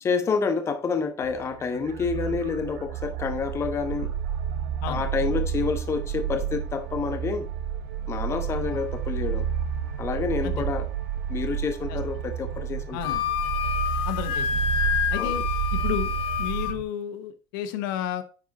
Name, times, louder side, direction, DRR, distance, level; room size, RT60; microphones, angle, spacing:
voice 1, 0.0-4.1 4.9-7.5 8.1-9.5 10.0-10.9 11.3-13.0 15.2-15.3, left 5 dB, 25° left, 1.0 m, -28 dB
sound 1, 1.2-16.8, right 8 dB, 90° right, 1.2 m, -30 dB
voice 2, 12.9-13.2 14.1-14.5 15.1-15.4 15.7-16.1 16.4-18.2, left 10 dB, 85° left, 1.0 m, -32 dB
Wind instrument woodwind instrument, 13.0-16.8, left 8 dB, 55° left, 0.8 m, -28 dB
10.0 x 4.1 x 4.0 m
cardioid pair, 140°, 11 cm